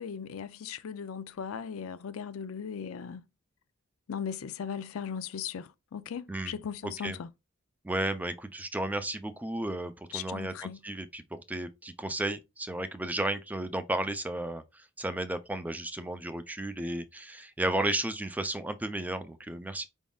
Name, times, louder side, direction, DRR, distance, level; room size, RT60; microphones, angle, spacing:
voice 1, 0.0-3.2 4.1-7.3 10.1-10.8, left 7 dB, 85° left, 0.4 m, -38 dB
voice 2, 7.8-19.9, right 1 dB, 10° right, 0.4 m, -33 dB
5.1 x 3.6 x 2.3 m
head